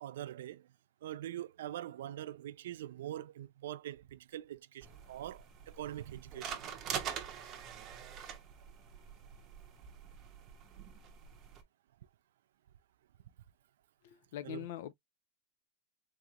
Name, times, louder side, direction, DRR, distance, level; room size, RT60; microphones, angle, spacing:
voice 1, 0.0-0.7 1.0-6.7 14.4-14.6, right 12 dB, 80° right, 0.3 m, -43 dB
sound 1, 4.8-11.6, right 8 dB, 25° right, 0.7 m, -45 dB
voice 2, 14.0-14.9, left 11 dB, 60° left, 0.5 m, -43 dB
3.8 x 2.8 x 2.3 m
supercardioid pair, 165°, 0 cm